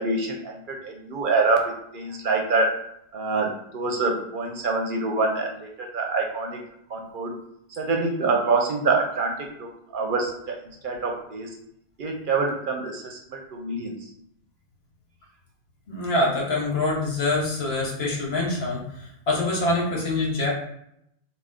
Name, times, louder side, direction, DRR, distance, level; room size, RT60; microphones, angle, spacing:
voice 1, 0.0-2.8 3.1-6.6 6.9-7.3 7.8-10.6 10.8-11.5 12.0-13.9, right 3 dB, 60° right, 2 dB, 0.7 m, -26 dB
voice 2, 15.9-20.5, left 2 dB, 75° left, -2 dB, 1.3 m, -25 dB
3.5 x 2.4 x 3.5 m, 0.75 s
omnidirectional pair, 1.1 m